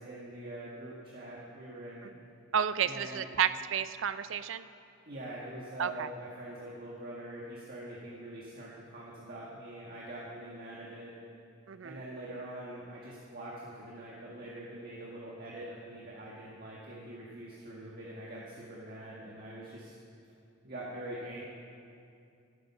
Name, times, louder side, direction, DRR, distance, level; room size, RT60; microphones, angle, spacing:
voice 1, 0.0-2.2 2.8-3.3 5.1-11.1 11.8-20.0 20.6-21.4, right 1 dB, 50° right, -6 dB, 1.6 m, -44 dB
voice 2, 2.5-4.6 5.8-6.1 11.7-12.0, right 8 dB, 70° right, 13 dB, 0.4 m, -31 dB
14.0 x 8.9 x 5.7 m, 2.5 s
head